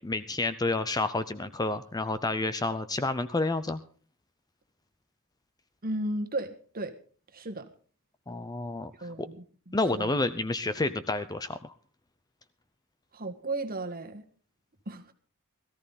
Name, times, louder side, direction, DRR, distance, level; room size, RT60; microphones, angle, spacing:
voice 1, 0.0-3.8 8.3-8.9 9.7-11.7, left 2 dB, 20° left, 12 dB, 0.6 m, -29 dB
voice 2, 5.8-6.9 7.3-7.7 9.0-10.1 13.1-14.2 14.8-15.1, right 2 dB, 45° right, 7 dB, 1.6 m, -35 dB
18.0 x 14.0 x 4.0 m, 0.40 s
head